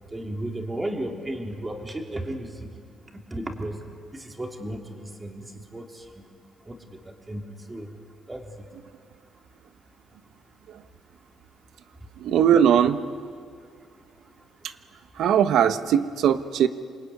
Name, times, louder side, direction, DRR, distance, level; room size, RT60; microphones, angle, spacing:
voice 1, 0.1-2.7 3.1-3.8 4.1-6.3 6.7-6.9 7.3-7.4 7.7-7.9 8.3-8.5, right 1 dB, 15° right, 2 dB, 3.5 m, -34 dB
voice 2, 12.2-13.0 15.2-16.7, right 9 dB, 75° right, 10 dB, 1.3 m, -20 dB
27.5 x 22.0 x 9.7 m, 2.1 s
cardioid pair, 115°, 0 cm